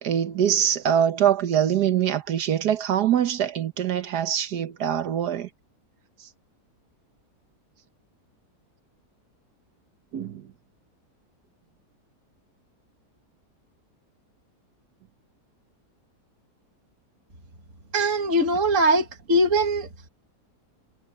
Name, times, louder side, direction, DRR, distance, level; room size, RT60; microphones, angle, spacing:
voice 1, 0.0-5.5 10.1-10.4, right 9 dB, 75° right, 1.6 m, -23 dB
voice 2, 17.9-19.9, right 1 dB, 50° right, 2.5 m, -21 dB
omnidirectional pair, 1.7 m